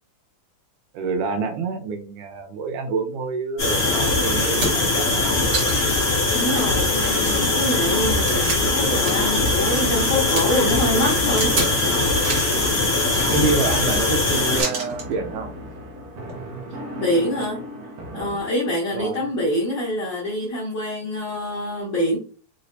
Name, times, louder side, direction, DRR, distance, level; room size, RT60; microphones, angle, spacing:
voice 1, 0.9-5.4 13.3-15.5 18.9-19.2, right 4 dB, 85° right, 5 dB, 2.3 m, -27 dB
sound 1, 3.6-14.6, left 2 dB, 40° left, 2.2 m, -21 dB
sound 2, 4.6-5.0 5.5-6.0 6.4-6.5 7.0-9.4 9.7-10.4 11.4-11.8 12.1-12.6 13.1-13.8 14.6-15.1 16.2-16.4, right 3 dB, 45° right, 1.3 m, -29 dB
voice 2, 6.3-11.5 17.0-17.6 18.1-22.2, left 1 dB, 70° left, -5 dB, 1.0 m, -25 dB
sound 3, 8.8-18.4, right 1 dB, 70° right, 1.7 m, -36 dB
4.9 x 3.2 x 2.6 m, 0.39 s
omnidirectional pair, 3.5 m